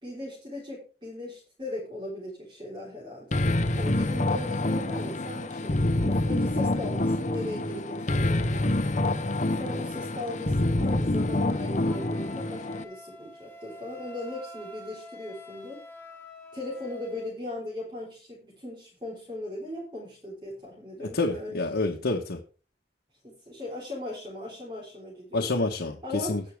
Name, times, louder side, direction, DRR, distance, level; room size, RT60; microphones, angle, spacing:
voice 1, 0.0-3.4 3.7-9.1 9.5-15.8 16.5-21.6 23.2-25.5 26.0-26.4, left 1 dB, 25° right, -6 dB, 3.8 m, -38 dB
sound 1, 3.3-12.8, left 1 dB, 40° left, 0.8 m, -27 dB
Wind instrument woodwind instrument, 11.9-17.3, left 1 dB, 15° left, 2.0 m, -46 dB
voice 2, 21.0-22.4 25.3-26.4, left 2 dB, 80° left, 1 dB, 1.3 m, -28 dB
18.5 x 6.2 x 3.5 m, 0.36 s
head